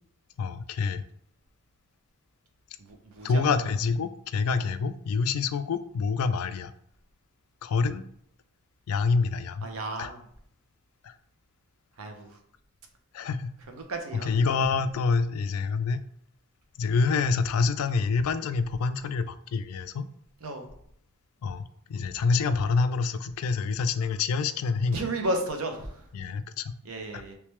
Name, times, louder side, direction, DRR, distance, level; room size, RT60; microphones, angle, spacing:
voice 1, 0.4-1.0 3.2-6.7 7.6-8.0 8.9-9.6 10.0-10.1 11.0-11.1 13.1-13.5 14.3-16.0 16.8-20.1 21.4-25.0 26.2-26.7, left 4 dB, 75° left, 12 dB, 0.3 m, -27 dB
voice 2, 2.8-3.7 4.6-4.7 9.6-10.3 12.0-12.4 13.7-14.3 20.4-20.7 24.9-26.1 26.8-27.3, right 2 dB, 75° right, 4 dB, 0.7 m, -34 dB
3.3 x 3.1 x 3.1 m, 0.67 s
head